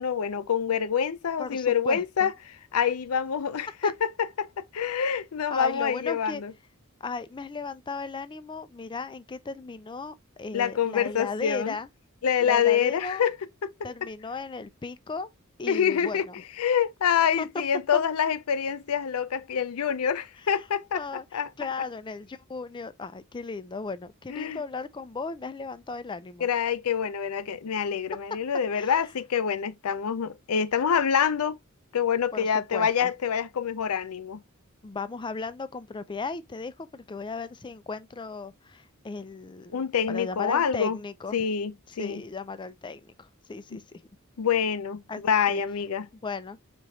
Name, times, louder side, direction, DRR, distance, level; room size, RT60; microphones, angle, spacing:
voice 1, 0.0-2.3 2.7-6.5 10.5-11.8 12.2-13.4 13.6-13.7 15.7-16.3 16.6-21.0 21.3-21.5 24.3-24.6 26.4-31.6 31.9-34.4 39.7-41.0 41.3-42.2 44.4-46.1, left 7 dB, 85° left, 0.5 m, -26 dB
voice 2, 1.4-2.3 3.8-3.9 5.5-6.4 7.0-11.9 12.4-13.3 13.8-15.3 15.6-16.4 17.4-17.5 17.9-18.0 20.5-20.6 20.9-26.5 28.7-29.1 32.3-33.1 34.8-39.8 40.1-41.5 41.9-44.0 45.1-45.6 46.2-46.6, left 4 dB, 20° left, 0.4 m, -36 dB
4.9 x 3.0 x 2.7 m
head